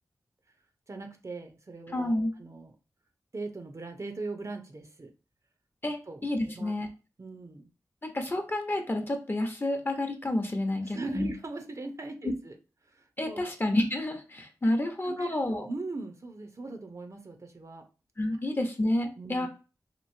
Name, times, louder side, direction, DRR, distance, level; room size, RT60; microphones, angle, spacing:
voice 1, 0.9-2.1 2.4-2.7 3.3-5.1 6.1-6.2 6.5-6.7 7.2-7.7 10.8-12.5 12.9-13.4 15.0-17.8 19.2-19.5, right 3 dB, 50° right, 5 dB, 0.6 m, -40 dB
voice 2, 1.9-2.3 5.8-6.9 8.0-11.3 13.2-15.7 18.2-19.5, left 1 dB, 30° left, 5 dB, 0.8 m, -29 dB
3.0 x 2.6 x 2.6 m, 0.32 s
cardioid pair, 45°, 7 cm